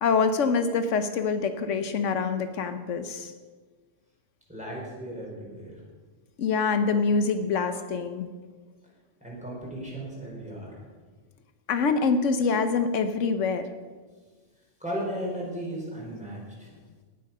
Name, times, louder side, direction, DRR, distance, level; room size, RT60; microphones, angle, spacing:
voice 1, 0.0-3.3 6.4-8.3 11.7-13.7, left 5 dB, 80° left, 9 dB, 1.1 m, -25 dB
voice 2, 4.5-5.8 9.2-10.8 14.8-16.7, equal, 5° right, -4 dB, 4.3 m, -35 dB
18.0 x 7.8 x 5.5 m, 1.4 s
omnidirectional pair, 1.3 m